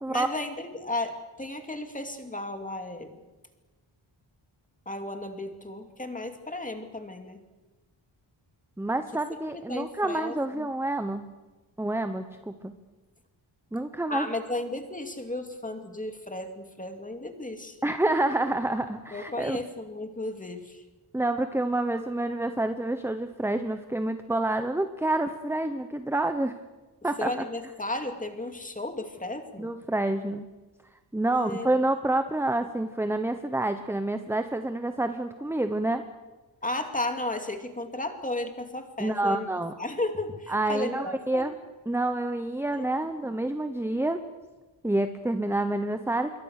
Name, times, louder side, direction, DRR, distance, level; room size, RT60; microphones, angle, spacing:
voice 1, 0.1-3.2 4.9-7.4 9.5-10.7 14.1-17.8 19.1-20.8 27.2-29.7 31.3-31.7 36.6-39.5 39.8-41.5 42.8-42.9, left 2 dB, 15° left, 6 dB, 2.6 m, -34 dB
voice 2, 8.8-11.3 11.8-12.7 13.7-14.3 17.8-19.6 21.1-26.6 27.0-27.3 29.6-30.5 31.1-36.0 39.0-39.7 40.5-41.6 41.9-44.2 44.8-46.4, right 2 dB, 5° right, 8 dB, 1.0 m, -28 dB
27.0 x 23.0 x 6.6 m, 1.2 s
wide cardioid pair, 150°, 46 cm